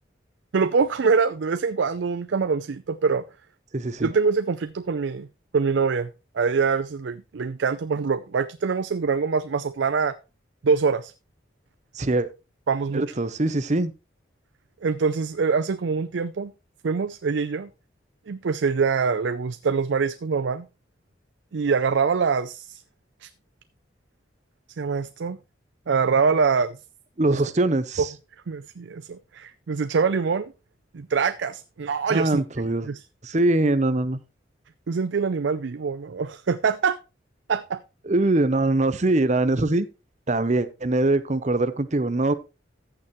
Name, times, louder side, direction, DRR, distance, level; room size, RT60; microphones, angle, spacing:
voice 1, 0.5-3.2 4.0-5.3 5.5-10.2 10.6-11.1 12.7-13.1 14.8-16.5 16.8-17.7 18.3-20.6 21.5-22.8 23.2-23.3 24.8-25.4 25.9-26.8 27.3-27.4 28.5-30.5 30.9-32.4 32.8-33.0 34.9-37.0 37.5-37.8, right 5 dB, 75° right, 0.5 m, -24 dB
voice 2, 3.7-4.1 11.9-12.3 12.9-13.9 27.2-28.1 32.1-32.9 33.2-34.2 38.0-39.9 40.3-42.3, right 2 dB, 40° right, 0.7 m, -22 dB
14.5 x 6.8 x 3.1 m
head